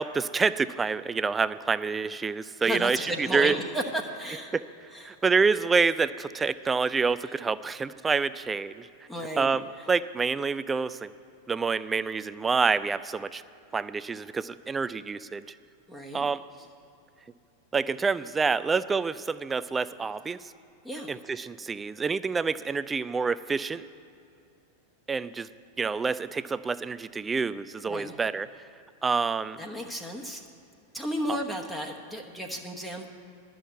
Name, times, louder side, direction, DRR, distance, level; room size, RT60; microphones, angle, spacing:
voice 1, 0.0-3.5 4.5-4.6 5.0-8.9 9.4-11.1 11.5-13.4 13.7-15.6 16.1-16.5 17.7-20.4 21.1-23.8 25.1-25.5 25.8-28.5 29.0-29.6 31.3-31.4, right 5 dB, 15° right, 16 dB, 0.3 m, -27 dB
voice 2, 2.6-4.5 4.9-5.1 9.1-9.5 15.9-16.3 20.8-21.1 27.9-28.2 29.6-30.4 30.9-33.1, equal, 5° left, 1 dB, 1.0 m, -33 dB
11.0 x 6.2 x 9.0 m, 2.6 s
figure-of-eight pair, 90°, 0 cm